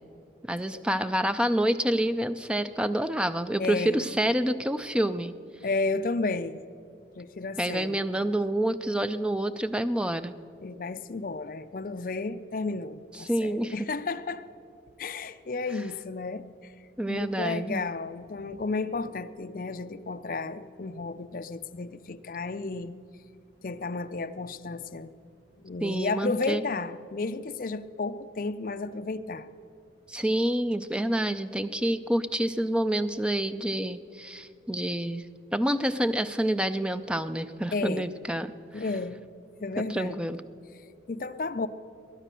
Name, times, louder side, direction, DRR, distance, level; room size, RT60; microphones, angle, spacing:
voice 1, 0.4-5.4 7.6-10.4 13.2-13.7 17.0-17.8 25.8-26.6 30.1-35.3 35.5-38.8 39.9-40.4, right 1 dB, 5° right, 11 dB, 0.4 m, -28 dB
voice 2, 3.6-4.1 5.6-6.6 7.2-8.0 10.6-14.4 15.0-16.7 17.1-23.0 23.6-25.1 25.6-29.5 37.7-38.1 38.7-39.2 39.6-40.4 41.1-41.7, left 3 dB, 50° left, 11 dB, 0.5 m, -32 dB
20.0 x 10.0 x 6.7 m, 2.5 s
head